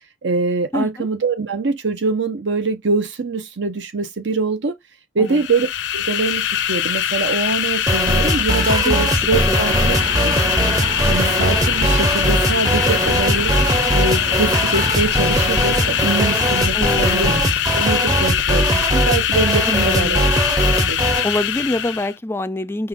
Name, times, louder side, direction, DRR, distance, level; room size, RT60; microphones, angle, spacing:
voice 1, 0.2-4.8 5.1-10.3 11.0-13.5 13.9-17.3 17.7-20.2 20.8-21.0, right 3 dB, 80° right, 0.8 m, -23 dB
voice 2, 0.7-1.1 5.2-5.4 8.8-9.7 16.7-17.6 19.7-20.2 21.2-22.9, left 1 dB, 15° left, 0.3 m, -26 dB
sound 1, 5.3-22.1, left 10 dB, 75° left, 0.5 m, -22 dB
sound 2, 7.9-21.3, right 1 dB, 20° right, 0.6 m, -20 dB
sound 3, 9.7-16.7, right 2 dB, 35° right, 1.3 m, -30 dB
5.6 x 2.3 x 3.5 m
head